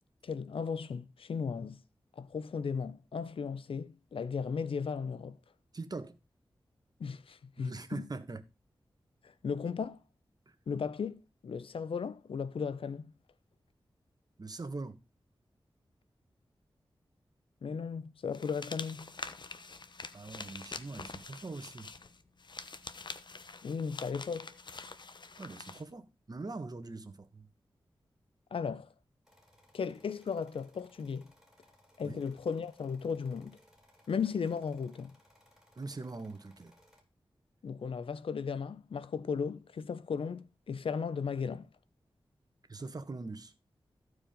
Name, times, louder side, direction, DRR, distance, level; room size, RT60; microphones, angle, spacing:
voice 1, 0.2-1.8 2.2-5.4 7.0-8.1 9.4-10.0 10.7-13.1 17.6-19.1 23.6-24.6 28.5-28.9 29.7-31.3 32.0-33.6 34.1-35.1 37.6-41.7, left 6 dB, 80° left, 0.7 m, -36 dB
voice 2, 5.7-6.1 7.6-8.4 10.5-10.6 14.4-15.0 20.1-21.9 25.4-27.5 32.0-32.2 35.8-36.7 42.7-43.5, right 3 dB, 45° right, 1.4 m, -42 dB
sound 1, 18.3-25.8, left 4 dB, 55° left, 1.0 m, -46 dB
sound 2, 29.2-37.0, equal, 5° right, 4.3 m, -65 dB
14.5 x 4.9 x 5.1 m
cardioid pair, 60°, 9 cm